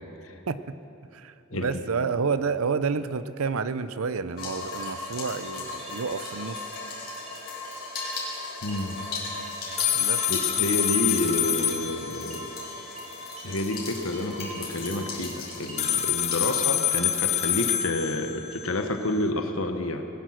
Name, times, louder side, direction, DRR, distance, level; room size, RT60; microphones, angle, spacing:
voice 1, 0.5-0.8 1.1-6.7 9.9-10.2, right 5 dB, 80° right, 13 dB, 0.6 m, -29 dB
voice 2, 1.5-1.8 8.6-9.0 10.3-12.5 13.4-20.0, left 2 dB, 75° left, 6 dB, 1.2 m, -29 dB
sound 1, 4.4-16.5, left 3 dB, 50° left, 3.9 m, -37 dB
sound 2, 4.5-16.0, right 2 dB, 30° right, 4.2 m, -49 dB
sound 3, 9.8-13.2 15.8-19.2, left 11 dB, 30° left, 0.6 m, -27 dB
19.5 x 10.0 x 6.4 m, 2.8 s
head